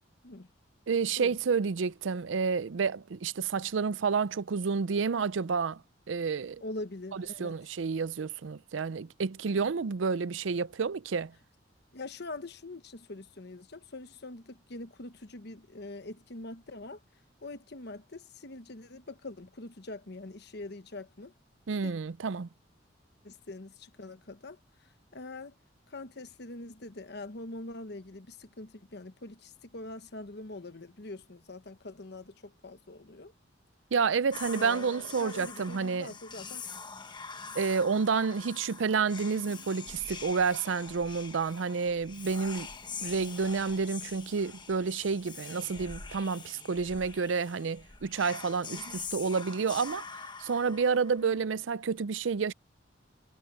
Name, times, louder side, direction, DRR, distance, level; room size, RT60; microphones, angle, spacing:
voice 1, 0.9-5.8 6.1-6.6 7.1-11.3 21.7-22.5 33.9-36.1 37.5-42.7 43.0-50.0 50.4-52.5, right 5 dB, 85° right, 0.5 m, -30 dB
voice 2, 6.6-7.5 11.9-17.0 17.4-21.3 21.8-21.9 23.2-24.6 25.1-25.5 25.9-33.3 34.5-36.6 39.3-39.7 48.7-49.0 51.2-51.4, left 2 dB, 60° left, 1.2 m, -43 dB
Whispering, 34.3-51.4, left 5 dB, 25° left, 1.2 m, -44 dB
head